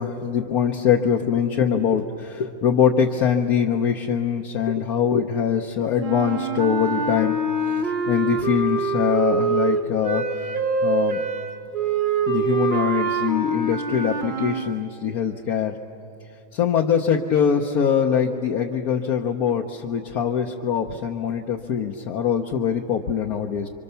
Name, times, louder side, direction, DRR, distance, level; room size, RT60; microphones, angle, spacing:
voice 1, 0.0-7.4 7.8-10.2 10.8-11.2 12.3-15.7 16.5-23.7, left 7 dB, 60° left, 2 dB, 1.1 m, -23 dB
sound 1, 6.0-14.7, right 4 dB, 40° right, 0.7 m, -25 dB
28.5 x 25.0 x 6.8 m, 2.8 s
omnidirectional pair, 2.2 m